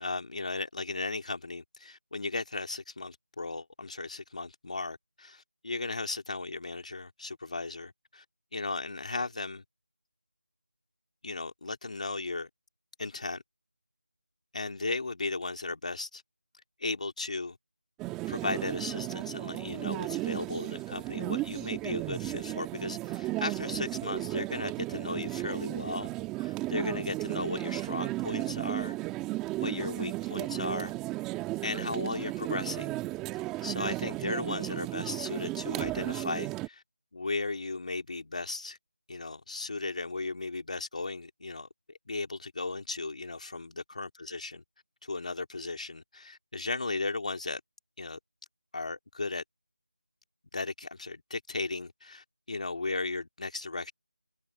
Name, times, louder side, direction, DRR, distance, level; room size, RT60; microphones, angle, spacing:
voice 1, 0.0-8.2 8.5-9.6 11.2-12.5 13.0-13.4 14.5-16.2 16.8-17.6 18.3-26.1 26.4-28.9 29.6-30.9 31.6-33.0 33.6-36.8 37.1-38.8 39.1-41.7 42.1-44.6 45.0-47.6 48.0-48.2 48.7-49.4 50.5-53.9, left 3 dB, 50° left, 2.6 m, -36 dB
sound 1, 18.0-36.7, right 18 dB, 5° right, 1.6 m, -34 dB
figure-of-eight pair, 170°, 5 cm